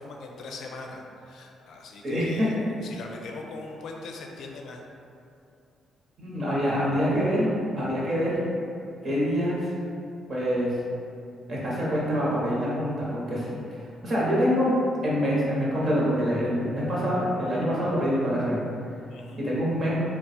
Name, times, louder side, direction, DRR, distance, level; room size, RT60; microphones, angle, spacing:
voice 1, 0.0-4.8 19.1-19.4, left 3 dB, 75° left, 1 dB, 0.5 m, -40 dB
voice 2, 2.0-2.6 6.2-8.4 9.0-9.6 10.3-10.8 11.5-13.5 14.0-18.6 19.4-19.9, equal, 45° right, -6 dB, 1.1 m, -25 dB
3.5 x 2.3 x 4.1 m, 2.6 s
cardioid pair, 90°, 0 cm